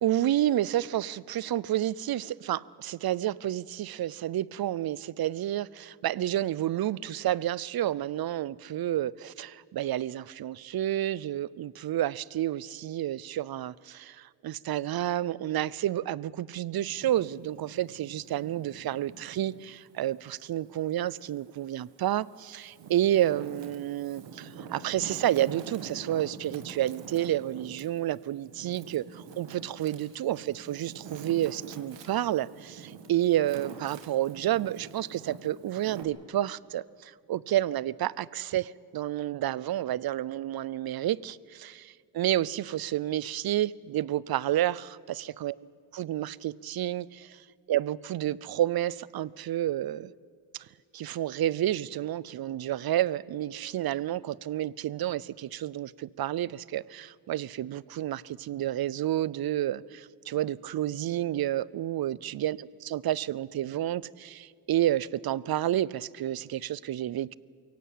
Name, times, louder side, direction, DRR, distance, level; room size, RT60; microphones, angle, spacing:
voice 1, 0.0-45.5 45.9-50.1 50.5-50.7 50.9-67.3, right 12 dB, 55° right, 0.6 m, -30 dB
Wind, 16.8-19.7 20.2-21.5 22.1-36.0, right 5 dB, 75° right, 2.0 m, -46 dB
23.0 x 17.0 x 8.6 m
cardioid pair, 65°, 44 cm